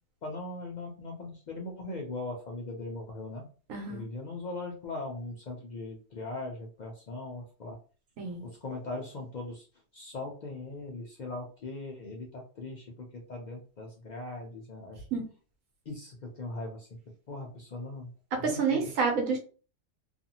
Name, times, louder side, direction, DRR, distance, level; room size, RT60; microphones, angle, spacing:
voice 1, 0.2-3.4 3.9-7.8 8.4-9.7 9.9-15.0 15.9-16.9 17.3-18.1 18.4-18.9, left 2 dB, 70° left, 0 dB, 0.4 m, -40 dB
voice 2, 3.7-4.0 8.2-8.4 15.1-15.2 18.3-19.4, right 5 dB, 80° right, 2 dB, 1.2 m, -28 dB
2.5 x 2.4 x 2.8 m, 0.37 s
omnidirectional pair, 1.4 m